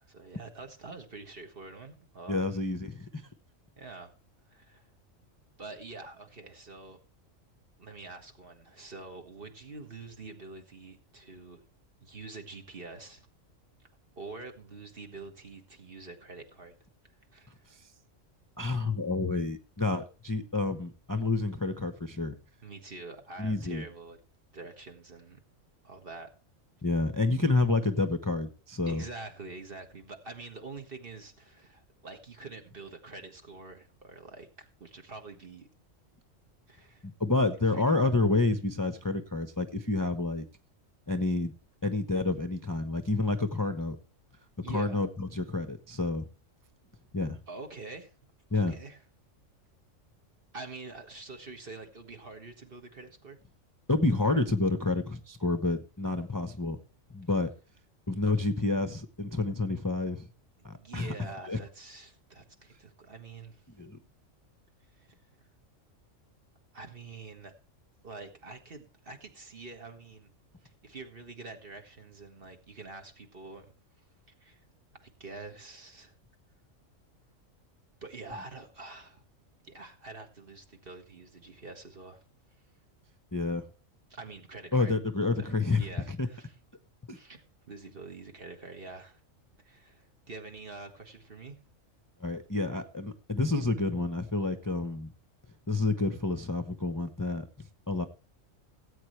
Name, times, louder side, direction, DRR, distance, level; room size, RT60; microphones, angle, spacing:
voice 1, 0.0-2.6 3.8-4.1 4.5-4.9 5.6-7.0 7.8-11.6 12.0-13.2 14.2-16.8 17.0-17.7 22.6-24.2 24.5-25.4 25.8-26.3 28.9-35.7 36.7-37.1 37.7-38.0 44.6-45.1 47.5-49.0 50.5-53.4 56.1-56.2 60.7-63.7 64.9-65.1 66.7-67.5 68.0-70.3 70.6-73.7 74.4-74.6 75.0-76.1 78.0-79.2 79.6-82.2 84.1-84.9 85.4-85.5 85.8-86.5 87.1-89.2 89.6-91.6, right 3 dB, 45° right, 1.8 m, -46 dB
voice 2, 2.3-3.3 17.7-17.8 18.6-22.4 23.4-23.8 26.8-29.0 37.0-40.4 41.1-41.5 41.8-44.0 44.7-46.3 47.1-47.4 48.5-48.7 53.9-56.8 57.1-57.5 58.1-60.3 60.6-61.6 63.8-64.0 83.3-83.7 84.7-86.3 87.1-87.2 92.2-95.1 95.7-97.5 97.9-98.0, left 2 dB, 20° left, 0.7 m, -29 dB
18.0 x 8.5 x 3.2 m
omnidirectional pair, 1.3 m